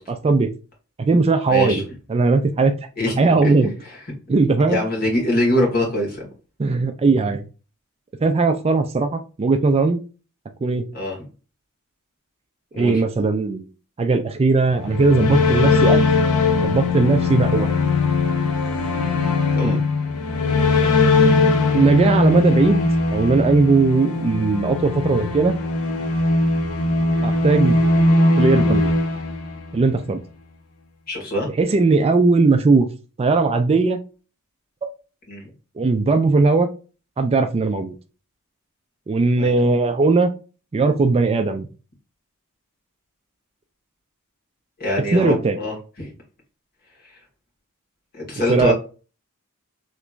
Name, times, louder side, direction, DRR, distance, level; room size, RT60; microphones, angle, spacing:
voice 1, 0.1-0.5 1.0-1.8 2.1-2.8 3.2-3.7 4.3-4.8 6.6-7.4 8.2-10.0 10.6-10.9 12.8-13.6 14.0-16.0 16.6-17.7 19.6-19.8 21.7-25.6 27.2-27.8 28.4-28.9 29.7-30.2 31.6-32.9 33.2-34.0 35.8-36.7 37.2-37.9 39.1-40.3 40.7-41.7 45.1-45.6 48.5-48.7, right 3 dB, 25° right, 7 dB, 0.3 m, -18 dB
voice 2, 1.5-1.8 3.0-3.4 4.7-6.2 10.9-11.2 12.7-13.0 19.5-19.8 31.1-31.5 35.3-35.5 39.4-39.5 44.8-46.1 48.1-48.7, left 1 dB, 45° left, -1 dB, 1.7 m, -23 dB
sound 1, 14.7-29.9, left 3 dB, 75° left, 0.7 m, -20 dB
3.3 x 2.9 x 2.4 m, 0.34 s
head